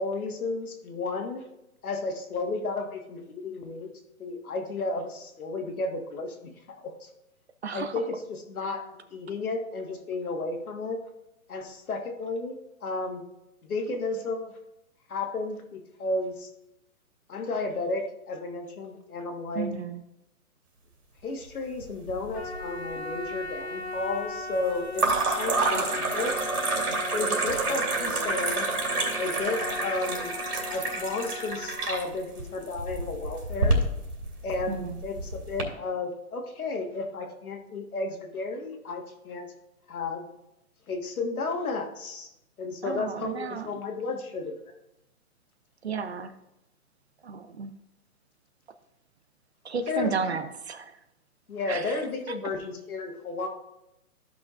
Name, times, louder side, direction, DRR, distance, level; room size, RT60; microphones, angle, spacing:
voice 1, 0.0-1.4 1.8-3.9 4.2-6.5 6.8-7.1 7.7-11.0 11.5-13.3 13.6-14.5 15.1-16.5 17.3-19.7 21.2-26.4 27.1-28.7 29.2-30.4 30.7-33.8 34.4-39.5 39.9-40.3 40.9-42.3 42.6-44.6 49.9-50.2 51.5-53.5, left 3 dB, 70° left, 3 dB, 1.7 m, -33 dB
voice 2, 7.6-7.9 19.6-20.0 34.7-35.0 42.8-43.7 45.8-46.3 47.2-47.7 49.6-50.9 51.7-51.9, right 5 dB, 45° right, 10 dB, 0.6 m, -33 dB
sound 1, 21.8-22.6 22.9-23.5 24.9-35.6, right 2 dB, 80° right, 2.6 m, -29 dB
Trumpet, 22.3-31.8, left 3 dB, 45° left, 1.4 m, -38 dB
14.0 x 6.0 x 2.5 m, 0.89 s
hypercardioid pair, 165°, 45 cm